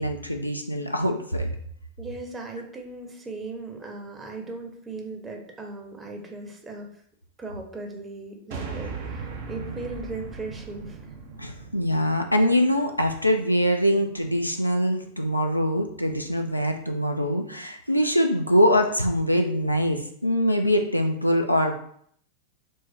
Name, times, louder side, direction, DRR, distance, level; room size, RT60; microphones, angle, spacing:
voice 1, 0.0-1.5 11.4-21.8, equal, 90° left, 3 dB, 0.4 m, -23 dB
voice 2, 2.0-6.9 7.4-11.1, right 3 dB, 20° right, 2 dB, 0.8 m, -38 dB
sound 1, 8.5-12.9, right 4 dB, 50° right, 0.7 m, -38 dB
4.5 x 2.1 x 4.4 m, 0.64 s
figure-of-eight pair, 90°, 0 cm